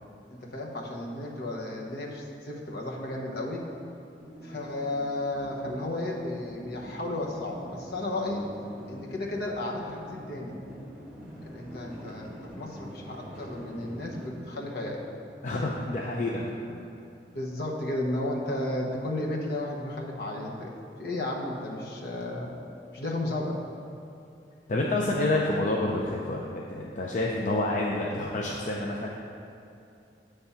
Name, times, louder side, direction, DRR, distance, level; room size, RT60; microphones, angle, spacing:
voice 1, 0.3-3.7 4.4-8.4 8.9-10.6 11.5-15.0 17.3-20.7 21.0-22.5 22.9-23.6, left 1 dB, 60° left, -2 dB, 0.9 m, -33 dB
sound 1, 4.2-14.3, equal, 5° right, 1.2 m, -45 dB
voice 2, 15.4-16.8 24.7-29.1, left 2 dB, 45° left, -2 dB, 0.5 m, -28 dB
8.4 x 3.5 x 5.5 m, 2.6 s
head